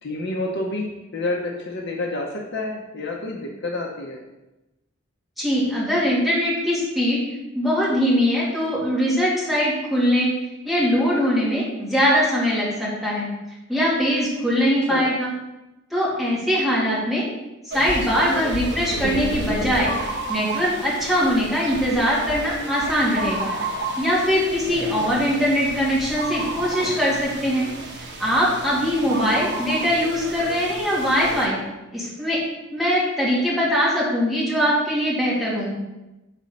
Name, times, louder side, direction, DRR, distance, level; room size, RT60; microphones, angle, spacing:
voice 1, 0.0-4.2 14.9-15.1 24.8-25.1, left 2 dB, 55° left, 0 dB, 0.8 m, -29 dB
voice 2, 5.4-7.2 7.5-10.3 10.6-13.3 13.7-15.3 15.9-17.2 17.7-23.5 24.0-27.7 28.2-31.6 31.9-32.4 32.7-35.7, equal, ahead, -8 dB, 2.2 m, -21 dB
sound 1, 17.7-31.5, right 2 dB, 55° right, 1.1 m, -31 dB
6.1 x 4.2 x 5.3 m, 0.99 s
head